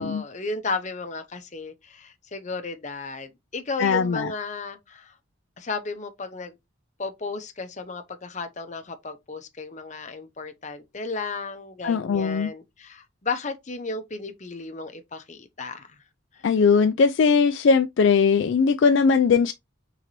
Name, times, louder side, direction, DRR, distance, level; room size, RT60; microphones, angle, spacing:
voice 1, 0.0-5.1 5.6-6.6 7.0-16.0 16.3-16.4, left 3 dB, 35° left, 0.7 m, -34 dB
voice 2, 3.8-4.3 11.8-12.5 16.4-19.5, left 5 dB, 60° left, 0.3 m, -20 dB
4.5 x 3.8 x 2.9 m
head